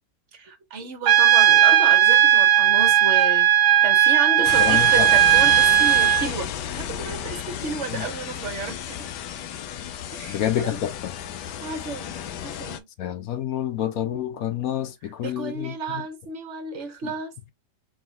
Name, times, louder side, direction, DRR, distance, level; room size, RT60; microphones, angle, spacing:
voice 1, 0.3-3.5 3.8-9.1 10.1-10.8 11.4-12.2 12.4-12.9 15.2-17.5, right 4 dB, 50° right, 1.3 m, -32 dB
Trumpet, 1.1-6.3, right 12 dB, 75° right, 1.2 m, -16 dB
sound 1, 4.4-12.8, left 10 dB, 85° left, 1.3 m, -33 dB
voice 2, 4.6-5.1 7.9-8.0 10.3-11.1 13.0-16.0 17.0-17.1, left 10 dB, 65° left, 1.1 m, -28 dB
4.8 x 3.1 x 2.9 m
omnidirectional pair, 1.8 m